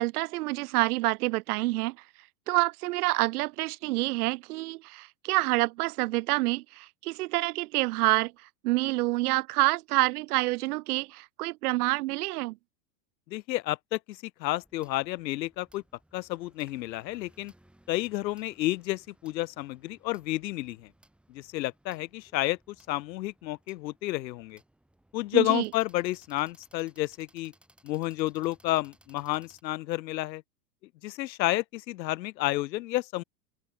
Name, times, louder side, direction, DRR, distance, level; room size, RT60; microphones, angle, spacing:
voice 1, 0.0-2.0 2.5-8.3 8.6-12.6 25.3-25.7, right 20 dB, 65° right, 0.6 m, -27 dB
voice 2, 13.3-15.8 16.1-17.5 17.9-20.9 21.3-24.6 25.1-27.5 27.8-30.4 31.0-33.2, left 17 dB, 90° left, 0.8 m, -31 dB
sound 1, 14.6-29.6, right 1 dB, ahead, 2.2 m, -63 dB
open air
supercardioid pair, 155°, 50 cm